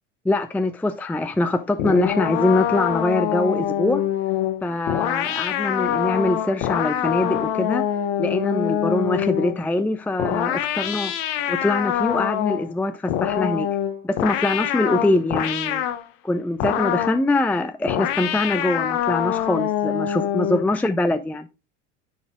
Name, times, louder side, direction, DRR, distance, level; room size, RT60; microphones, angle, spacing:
voice 1, 0.2-4.0 4.6-7.9 8.2-11.1 11.5-13.7 14.0-15.8 16.2-21.5, left 2 dB, 5° left, 0.5 m, -23 dB
sound 1, 1.8-9.6 10.2-12.7 13.1-16.0 16.6-17.2 17.9-20.7, left 10 dB, 60° left, 1.1 m, -24 dB
9.8 x 4.2 x 3.6 m
hypercardioid pair, 80°, 38 cm